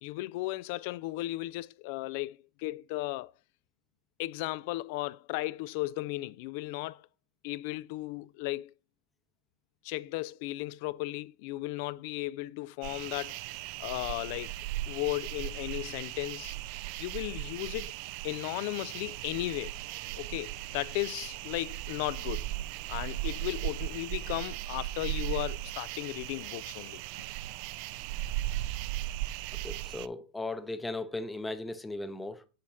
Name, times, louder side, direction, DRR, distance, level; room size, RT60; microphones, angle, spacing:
voice 1, 0.0-3.3 4.2-7.0 7.4-8.7 9.8-13.5 13.8-14.5 14.9-16.6 17.0-17.9 18.2-19.7 20.2-22.5 22.9-27.0, left 19 dB, 55° left, 0.3 m, -35 dB
sound 1, 12.8-30.1, right 15 dB, 50° right, 0.3 m, -37 dB
voice 2, 29.6-32.5, left 2 dB, 10° left, 0.7 m, -37 dB
7.6 x 4.3 x 5.3 m
supercardioid pair, 135°, 0 cm